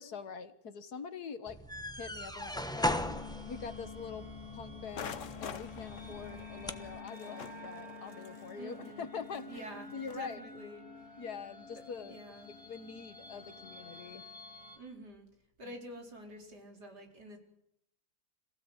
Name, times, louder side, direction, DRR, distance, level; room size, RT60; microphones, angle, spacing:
voice 1, 0.0-1.6 2.0-3.0 3.5-9.7 9.9-10.4 11.2-12.2 12.6-14.2 15.6-15.7, left 6 dB, 70° left, 11 dB, 1.9 m, -44 dB
sound 1, 1.5-7.0, left 1 dB, 5° left, 0.9 m, -39 dB
sound 2, 2.9-14.8, left 4 dB, 20° left, 4.0 m, -49 dB
sound 3, 4.9-10.3, left 7 dB, 55° left, 1.3 m, -47 dB
voice 2, 8.6-9.1 9.5-10.8 12.1-12.5 14.8-15.3 15.6-17.4, right 1 dB, 80° right, 2 dB, 5.0 m, -48 dB
26.5 x 16.5 x 8.1 m, 0.78 s
omnidirectional pair, 1.8 m